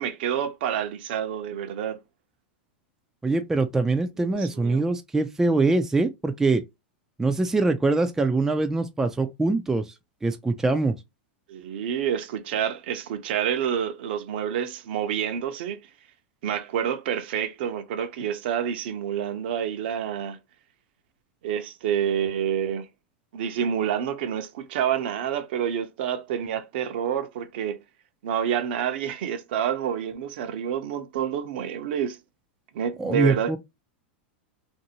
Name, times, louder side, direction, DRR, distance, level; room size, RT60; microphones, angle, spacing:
voice 1, 0.0-2.0 4.3-4.8 11.5-15.8 16.4-20.4 21.4-22.9 23.3-27.8 28.2-32.2 32.7-33.6, right 9 dB, 65° right, 0.7 m, -28 dB
voice 2, 3.2-6.6 7.2-9.9 10.2-10.9 33.0-33.6, right 3 dB, 10° right, 0.4 m, -23 dB
2.6 x 2.6 x 2.8 m
hypercardioid pair, 125°, 6 cm